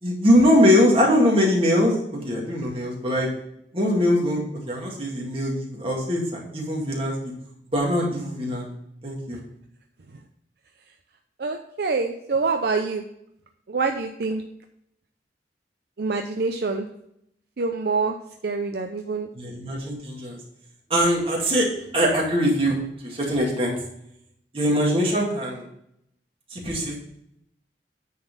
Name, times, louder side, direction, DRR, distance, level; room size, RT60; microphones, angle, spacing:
voice 1, 0.0-3.3 3.7-7.3 7.7-8.7 9.0-9.4 19.3-20.4 20.9-21.7 21.9-22.8 23.0-23.8 24.5-25.6 26.5-27.0, equal, 30° right, -2 dB, 2.1 m, -22 dB
voice 2, 11.4-13.0 13.7-14.4 16.0-16.9 17.6-18.2 18.4-19.3, right 4 dB, 60° right, 4 dB, 0.5 m, -25 dB
9.3 x 4.0 x 5.3 m, 0.75 s
head